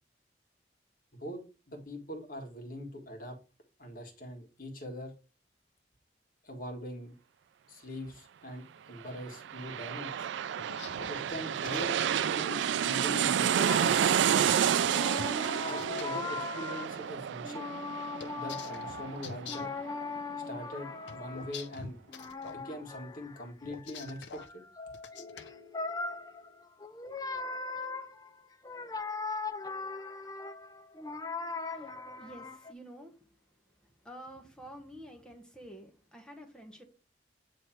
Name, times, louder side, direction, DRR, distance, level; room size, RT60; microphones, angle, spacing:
voice 1, 1.2-3.4 3.8-5.1 6.4-7.1 7.7-10.3 11.1-11.9 12.3-14.0 15.5-17.7 18.3-19.7 20.5-22.0 22.5-24.4, equal, 50° left, 3 dB, 1.5 m, -42 dB
sound 1, 9.2-20.5 20.9-21.0, right 9 dB, 85° right, 0.3 m, -30 dB
sound 2, 10.6-12.1 13.7-16.1 18.2-19.8 21.1-22.6 23.6-24.5 24.9-25.5, left 6 dB, 80° left, 0.6 m, -45 dB
sound 3, 13.7-14.5 14.9-17.2 17.4-21.7 22.1-32.7, left 4 dB, 20° left, 0.5 m, -40 dB
voice 2, 31.6-33.2 34.0-36.8, right 1 dB, 5° left, 2 dB, 1.3 m, -49 dB
8.8 x 3.2 x 4.3 m, 0.32 s
head